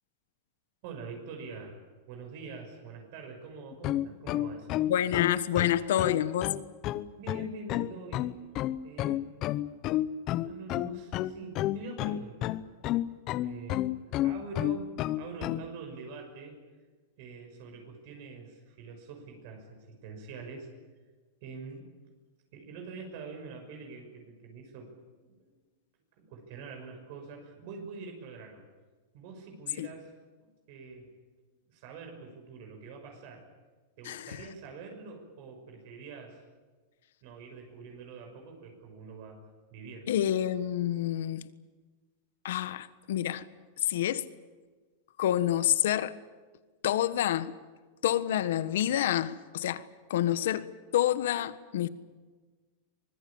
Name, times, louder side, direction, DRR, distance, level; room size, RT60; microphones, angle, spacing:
voice 1, 0.8-1.8 2.1-4.8 7.2-8.3 8.8-9.3 10.4-12.6 13.4-13.9 14.2-16.6 17.2-20.7 21.4-21.8 22.5-25.5 26.2-28.6 29.1-30.1 30.4-31.1 31.7-33.5 34.0-36.4 37.2-39.4 39.7-40.2, right 4 dB, 55° right, 6.2 m, -45 dB
sound 1, 3.7-15.6, left 14 dB, 35° left, 0.9 m, -30 dB
voice 2, 4.9-6.6 29.8-29.9 34.0-34.4 40.1-41.5 42.4-43.5 43.8-44.3 45.2-46.1 46.8-47.6 48.0-49.8 50.1-51.9, left 12 dB, 80° left, 1.4 m, -28 dB
25.0 x 20.5 x 8.8 m
supercardioid pair, 150°, 0 cm